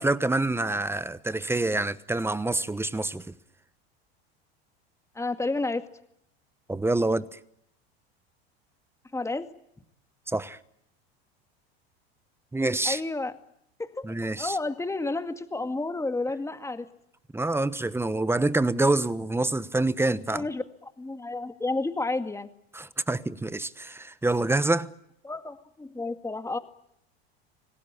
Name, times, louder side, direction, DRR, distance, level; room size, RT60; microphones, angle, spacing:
voice 1, 0.0-3.2 6.7-7.3 10.3-10.6 12.5-13.0 14.0-14.6 17.3-20.5 22.7-24.9, right 2 dB, 10° right, 1.1 m, -26 dB
voice 2, 5.2-5.8 9.1-9.5 12.8-13.3 13.8-16.9 20.3-20.6 21.0-22.5 25.2-26.6, left 2 dB, 10° left, 2.1 m, -31 dB
26.5 x 18.5 x 9.9 m
hypercardioid pair, 95°, 31 cm